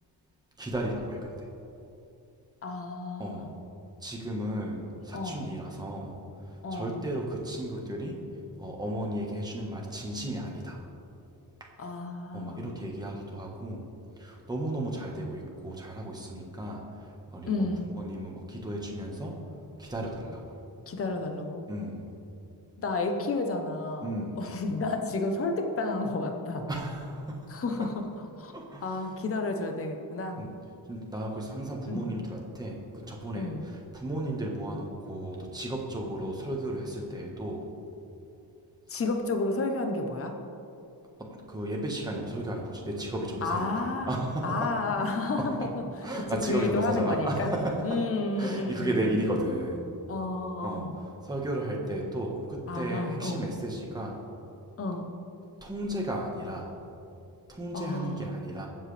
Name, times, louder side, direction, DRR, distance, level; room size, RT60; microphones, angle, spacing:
voice 1, 0.6-1.2 3.2-3.5 4.0-6.2 6.7-8.2 8.6-10.8 12.3-13.8 14.2-16.8 17.3-17.7 17.9-19.3 19.8-20.4 21.7-22.0 24.0-24.4 26.7-27.4 28.5-29.0 30.4-30.5 30.9-37.6 38.9-39.0 41.2-44.7 45.4-45.7 46.0-48.0 48.4-49.8 50.6-50.8 51.2-54.1 55.6-56.7 57.5-58.7, right 1 dB, 10° right, -1 dB, 1.5 m, -34 dB
voice 2, 2.6-3.5 5.1-5.5 6.6-7.0 11.8-12.6 17.4-17.9 20.9-21.6 22.8-26.6 27.5-28.5 28.8-30.5 31.9-32.1 33.3-33.6 38.9-40.4 43.4-44.2 44.4-45.8 46.1-47.5 47.8-49.2 50.1-51.0 52.7-53.4 54.8-55.1 57.7-58.3, left 3 dB, 35° left, 4 dB, 0.9 m, -31 dB
22.5 x 7.7 x 3.4 m, 2.8 s
wide cardioid pair, 175°, 41 cm